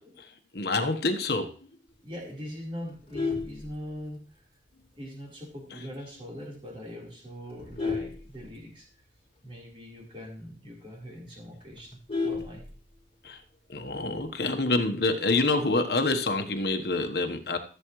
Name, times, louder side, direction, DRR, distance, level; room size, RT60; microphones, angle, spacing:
voice 1, 0.5-1.5 13.2-13.4 13.7-17.6, left 2 dB, 60° left, 6 dB, 1.2 m, -27 dB
voice 2, 2.0-4.2 4.9-8.9 9.4-12.6, equal, 30° right, -3 dB, 4.1 m, -41 dB
Vehicle horn car horn honking, 2.9-4.3 4.8-5.1 5.4-5.5 5.9-6.0 6.3-6.6 7.2-9.0 9.4-9.5 9.8-9.9 10.3-10.4 10.7-10.8 11.1-13.1 14.3-14.8, left 4 dB, 35° left, 3.7 m, -34 dB
15.0 x 7.9 x 3.2 m, 0.41 s
head